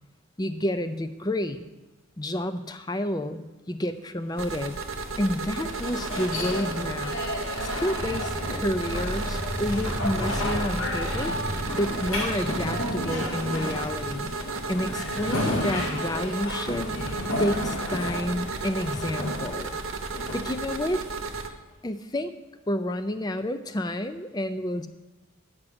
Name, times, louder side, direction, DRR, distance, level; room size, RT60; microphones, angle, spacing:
voice 1, 0.4-1.7 2.2-4.8 5.2-7.2 7.6-11.3 11.7-14.3 14.7-16.9 17.4-19.8 20.3-21.0 21.8-22.3 22.7-24.9, left 1 dB, 20° left, 10 dB, 0.5 m, -30 dB
sound 1, 4.3-21.4, left 1 dB, 85° left, 2.1 m, -33 dB
sound 2, 4.4-21.5, right 3 dB, 70° right, 0.9 m, -34 dB
Motorcycle, 8.0-15.6, equal, 5° right, 0.9 m, -38 dB
8.8 x 6.0 x 7.9 m, 1.2 s
head